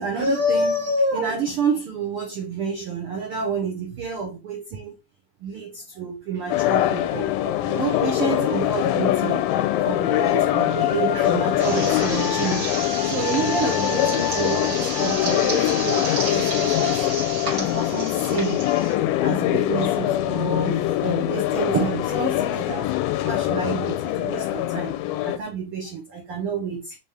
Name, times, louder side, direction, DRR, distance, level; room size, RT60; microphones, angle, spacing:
voice 1, 0.0-5.0 5.4-9.4 9.7-12.7 13.1-17.0 17.6-18.6 19.2-22.9 23.2-24.9 25.2-27.0, right 4 dB, 85° right, 1.2 m, -28 dB
sound 1, 6.5-25.4, left 13 dB, 85° left, 2.0 m, -23 dB
sound 2, 11.6-18.9, right 3 dB, 40° right, 1.4 m, -32 dB
5.2 x 2.7 x 3.2 m
omnidirectional pair, 3.5 m